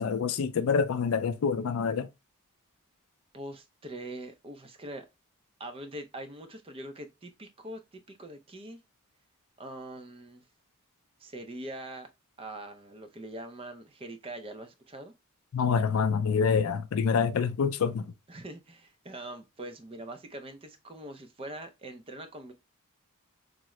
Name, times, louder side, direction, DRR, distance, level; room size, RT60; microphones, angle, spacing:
voice 1, 0.0-2.1 15.5-18.1, left 6 dB, 70° left, 0.4 m, -26 dB
voice 2, 3.3-5.1 5.6-8.8 9.6-10.4 11.2-12.1 12.4-15.1 18.3-22.5, right 1 dB, 25° right, 0.4 m, -43 dB
3.6 x 2.0 x 3.0 m
head